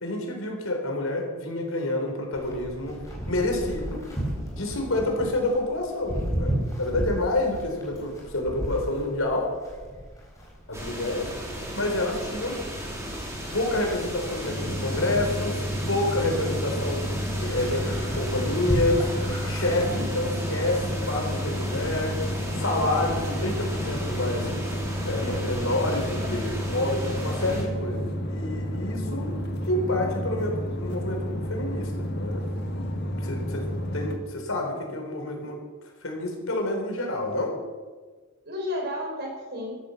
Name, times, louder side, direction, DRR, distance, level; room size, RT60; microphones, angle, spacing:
voice 1, 0.0-3.0 3.3-4.0 4.6-9.5 10.7-11.3 11.7-12.6 13.2-13.3 13.5-17.0 17.4-19.1 19.4-22.2 22.5-24.5 25.0-29.3 29.7-32.4 33.2-33.7 33.9-35.6 36.0-37.6, left 1 dB, 80° left, 2 dB, 4.0 m, -28 dB
Livestock farm animals working animals, 2.3-20.0, equal, 15° left, 4.4 m, -35 dB
sound 1, 10.7-27.6, equal, 15° right, 3.3 m, -35 dB
sound 2, 14.5-34.2, equal, 50° left, 1.6 m, -31 dB
voice 2, 19.9-20.2 26.2-26.8 29.0-29.3 38.4-39.8, left 1 dB, 50° right, 2 dB, 4.2 m, -34 dB
13.5 x 12.0 x 7.1 m, 1.4 s
head